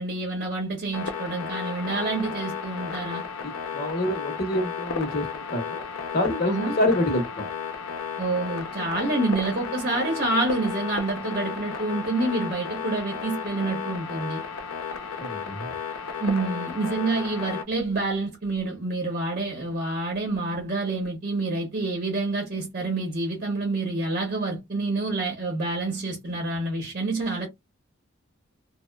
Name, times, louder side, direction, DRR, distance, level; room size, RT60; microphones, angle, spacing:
voice 1, 0.0-3.2 6.5-6.8 8.2-14.4 16.2-27.5, right 2 dB, 40° right, 0.8 m, -28 dB
sound 1, 0.9-17.6, left 6 dB, 90° left, 0.5 m, -34 dB
voice 2, 3.4-5.8 6.1-7.5 15.2-15.7, left 1 dB, 45° left, 0.7 m, -27 dB
2.8 x 2.0 x 2.2 m
head